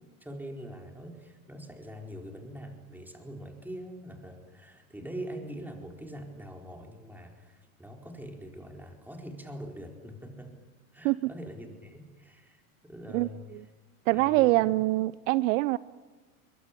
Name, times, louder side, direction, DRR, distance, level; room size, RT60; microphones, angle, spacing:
voice 1, 0.2-10.5 10.9-13.7 14.1-14.7, equal, 5° right, 2 dB, 4.5 m, -43 dB
voice 2, 14.1-15.8, right 19 dB, 65° right, 18 dB, 0.7 m, -24 dB
22.5 x 21.5 x 8.5 m, 1.3 s
hypercardioid pair, 95°, 43 cm